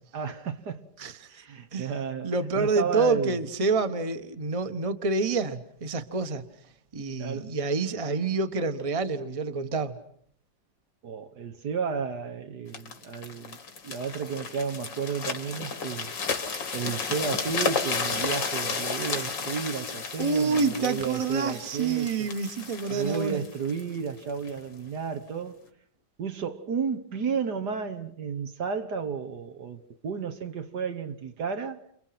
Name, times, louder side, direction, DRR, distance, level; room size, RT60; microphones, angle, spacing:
voice 1, 0.1-0.9 1.3-3.4 7.2-7.5 11.0-16.1 16.7-22.3 22.9-25.6 26.2-31.8, right 6 dB, 65° right, 1.9 m, -33 dB
voice 2, 1.0-1.3 1.7-1.9 2.2-6.4 6.9-10.0 20.2-23.4, right 4 dB, 20° right, 1.2 m, -27 dB
sound 1, 12.7-24.6 25.2-25.4, left 5 dB, 90° left, 2.9 m, -33 dB
30.0 x 28.0 x 6.0 m
omnidirectional pair, 1.9 m